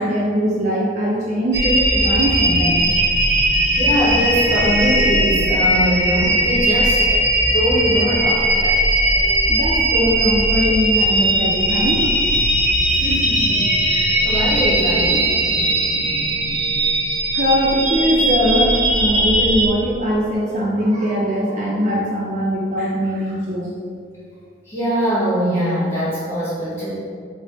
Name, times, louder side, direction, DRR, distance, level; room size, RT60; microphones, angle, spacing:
voice 1, 0.0-3.0 9.1-12.1 17.3-23.7, equal, 40° right, -4 dB, 0.4 m, -21 dB
sound 1, 1.5-19.7, right 1 dB, 90° right, 0.7 m, -18 dB
voice 2, 3.7-9.1 12.9-15.3 24.7-26.9, equal, 15° left, -11 dB, 1.2 m, -22 dB
3.3 x 2.0 x 3.8 m, 2.2 s
head